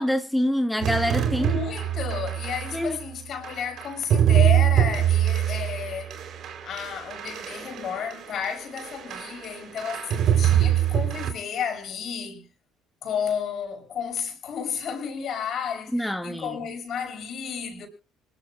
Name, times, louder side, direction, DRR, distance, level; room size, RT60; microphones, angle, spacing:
voice 1, 0.0-1.5 2.7-3.0 15.9-16.6, equal, 5° left, 1.8 m, -25 dB
sound 1, 0.8-2.8 3.4-8.4 8.8-9.5 9.8-11.3, right 10 dB, 60° right, 3.4 m, -23 dB
voice 2, 1.3-6.2 6.6-12.5 13.0-17.9, left 7 dB, 55° left, 6.1 m, -32 dB
25.5 x 13.5 x 2.3 m
hypercardioid pair, 60°, 0 cm